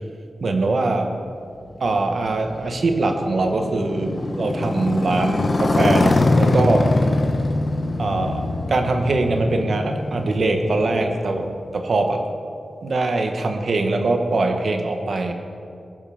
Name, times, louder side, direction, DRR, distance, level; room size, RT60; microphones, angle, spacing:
voice 1, 0.4-1.1 1.8-6.9 8.0-12.2 12.8-15.3, right 2 dB, 55° right, 5 dB, 1.5 m, -22 dB
Motorcycle, 1.7-11.7, left 2 dB, 40° left, 1.3 m, -23 dB
19.5 x 9.1 x 7.2 m, 2.5 s
wide cardioid pair, 145°, 0 cm